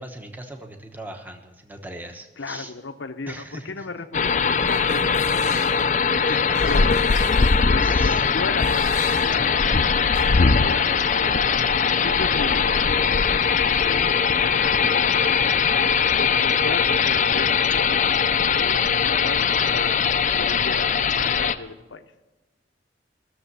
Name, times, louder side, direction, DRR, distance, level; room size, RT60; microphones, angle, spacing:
voice 1, 0.0-2.7 3.3-3.9 6.3-6.6 7.8-8.3, right 1 dB, 10° right, 4 dB, 1.0 m, -39 dB
voice 2, 2.4-5.5 6.1-7.0 7.7-10.0 10.4-11.5 12.0-12.7 13.8-15.2 16.2-18.0 18.6-22.0, left 3 dB, 80° left, 8 dB, 0.8 m, -35 dB
sound 1, 4.1-21.5, left 6 dB, 40° left, 0.5 m, -20 dB
sound 2, 4.7-5.8 6.6-7.6 8.6-9.3 10.1-10.2, right 2 dB, 75° right, 5.2 m, -40 dB
16.0 x 6.9 x 8.2 m, 1.1 s
head